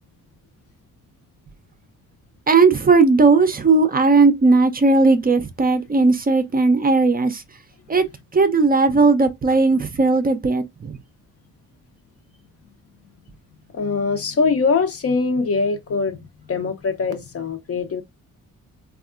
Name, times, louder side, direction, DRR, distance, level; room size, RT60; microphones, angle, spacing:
voice 1, 2.5-7.4 7.9-8.0 8.3-11.0, right 3 dB, 25° right, 0.5 m, -16 dB
voice 2, 13.7-18.0, left 4 dB, 45° left, 0.7 m, -22 dB
3.4 x 2.4 x 2.4 m
cardioid pair, 70°, 33 cm